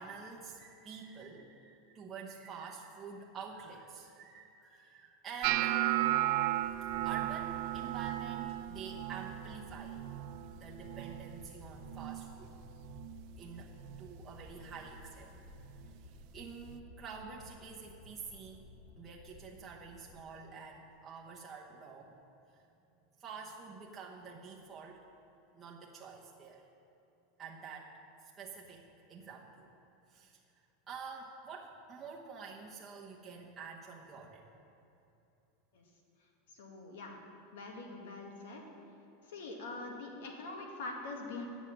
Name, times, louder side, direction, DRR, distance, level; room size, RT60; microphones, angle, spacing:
voice 1, 0.0-10.0 10.6-12.6 13.4-13.7 14.0-15.3 16.0-18.7 19.0-22.1 22.5-22.6 23.2-25.1 25.5-26.7 27.4-27.9 28.2-29.7 30.1-34.5, right 5 dB, 15° right, -4 dB, 0.9 m, -48 dB
sound 1, 5.4-11.5 11.8-12.3 12.7-13.2 13.8-14.0 15.8-15.9, right 15 dB, 45° right, 0.4 m, -35 dB
sound 2, 6.6-20.2, left 2 dB, 30° left, 0.7 m, -54 dB
voice 2, 36.5-37.2 37.5-38.6 39.3-41.4, left 3 dB, 85° left, 1 dB, 2.0 m, -44 dB
9.8 x 7.2 x 8.7 m, 3.0 s
supercardioid pair, 165°, 0 cm